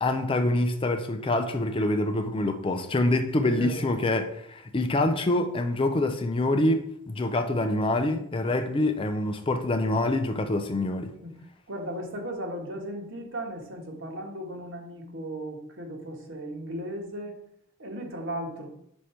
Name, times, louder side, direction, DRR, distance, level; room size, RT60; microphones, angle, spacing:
voice 1, 0.0-11.1, left 2 dB, 25° left, 0.4 m, -26 dB
voice 2, 3.4-3.9 11.2-11.4 11.7-17.4 17.8-18.7, right 1 dB, 60° right, 1.4 m, -36 dB
5.3 x 5.0 x 4.4 m
head